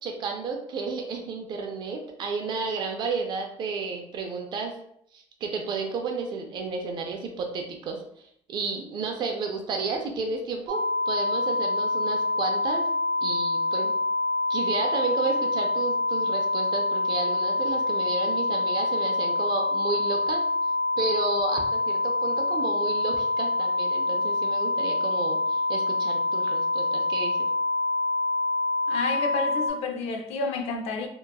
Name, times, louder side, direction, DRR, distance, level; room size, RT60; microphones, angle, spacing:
voice 1, 0.0-4.7 5.1-12.9 13.2-14.0 14.5-20.4 21.0-27.5, right 4 dB, 40° right, 0.4 m, -32 dB
sound 1, 10.7-29.7, left 2 dB, 75° right, 0.8 m, -26 dB
voice 2, 28.9-31.1, left 4 dB, 65° left, 0.4 m, -30 dB
2.8 x 2.3 x 2.2 m
cardioid pair, 180°, 11 cm